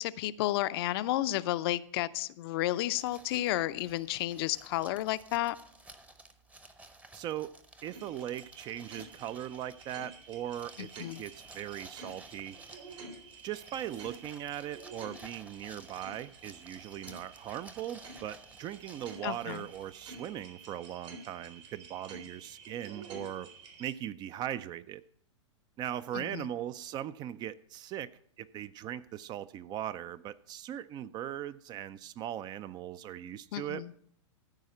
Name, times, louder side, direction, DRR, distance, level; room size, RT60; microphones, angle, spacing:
voice 1, 0.0-5.6 10.8-11.2 19.2-19.6 26.1-26.5 33.5-33.9, left 15 dB, 50° left, 0.5 m, -32 dB
sound 1, 3.0-20.5, right 2 dB, 10° right, 0.8 m, -55 dB
voice 2, 7.1-7.5 7.8-12.6 13.4-23.5 23.8-25.0 25.8-28.1 28.4-33.8, right 11 dB, 25° right, 0.4 m, -39 dB
sound 2, 7.9-23.9, right 3 dB, 70° right, 3.5 m, -51 dB
14.0 x 4.8 x 7.6 m
hypercardioid pair, 115°, 16 cm